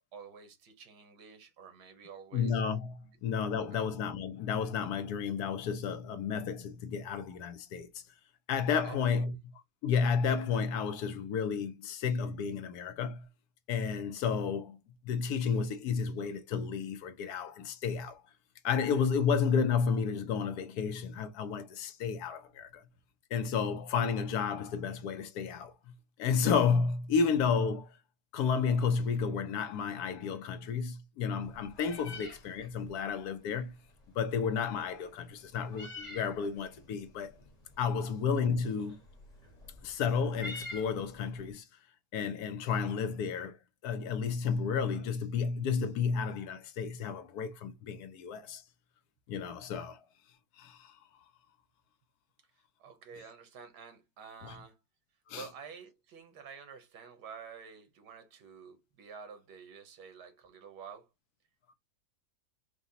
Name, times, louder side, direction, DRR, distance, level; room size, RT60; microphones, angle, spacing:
voice 1, 0.1-2.6 3.7-3.9 8.8-9.3 52.8-54.8 55.3-61.1, right 6 dB, 85° right, 1.6 m, -49 dB
voice 2, 2.3-8.0 8.5-9.3 9.8-13.3 13.7-14.8 15.0-18.2 18.6-22.8 23.3-25.9 26.2-27.9 28.3-33.7 34.1-37.3 37.8-39.0 39.8-41.7 42.1-43.5 43.8-48.6 49.3-50.0 50.6-51.0 54.4-54.6 55.3-55.5, left 6 dB, 75° left, 1.1 m, -32 dB
Meow, 31.4-41.5, left 2 dB, 30° left, 1.0 m, -49 dB
4.7 x 2.3 x 4.0 m
omnidirectional pair, 1.7 m